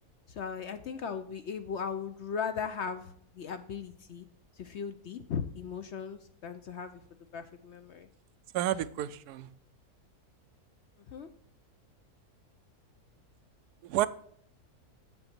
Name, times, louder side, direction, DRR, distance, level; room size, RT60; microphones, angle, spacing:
voice 1, 0.3-4.3 4.6-7.0 7.3-8.1 11.1-11.3, left 6 dB, 60° left, 0.7 m, -37 dB
voice 2, 8.5-9.5 13.9-14.1, right 13 dB, 85° right, 1.1 m, -30 dB
7.8 x 7.6 x 4.4 m
omnidirectional pair, 1.6 m